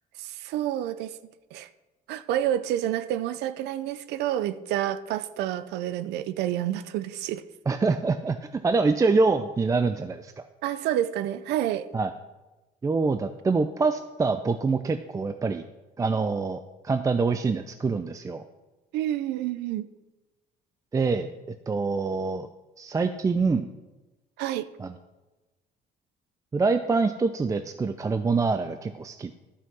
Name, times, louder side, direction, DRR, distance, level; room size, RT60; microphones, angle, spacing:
voice 1, 0.2-1.2 1.5-1.7 2.1-7.4 10.6-11.9 18.9-19.9 24.4-24.7, right 12 dB, 85° right, 15 dB, 0.6 m, -29 dB
voice 2, 7.7-8.4 8.6-10.5 11.9-12.1 12.8-15.6 16.0-18.4 20.9-21.3 21.7-22.5 22.8-23.7 24.8-24.9 26.5-29.3, right 4 dB, 20° right, 9 dB, 0.4 m, -25 dB
11.5 x 5.7 x 6.1 m, 1.1 s
cardioid pair, 110°, 17 cm